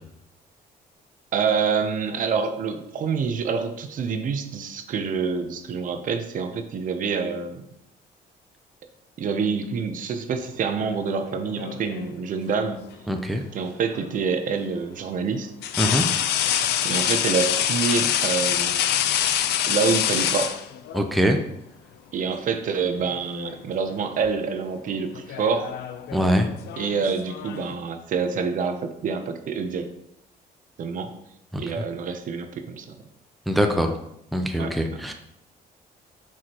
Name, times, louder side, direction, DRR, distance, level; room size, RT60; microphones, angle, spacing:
voice 1, 1.3-7.7 9.2-12.8 13.5-15.5 16.8-18.8 19.6-20.5 22.1-25.7 26.8-29.9 30.8-31.1 31.6-32.9 34.6-35.0, right 5 dB, 55° right, 8 dB, 0.7 m, -27 dB
sound 1, 11.3-12.2 13.9-14.1 15.6-21.1 22.3-22.5 22.9-23.6 23.9-24.3 25.1-27.7, left 10 dB, 90° left, 0.5 m, -26 dB
voice 2, 13.1-13.4 15.8-16.0 20.9-21.4 26.1-26.5 31.5-31.6 33.5-33.9 34.3-35.1, equal, ahead, 4 dB, 0.5 m, -22 dB
7.5 x 4.9 x 2.9 m, 0.78 s
cardioid pair, 140°, 17 cm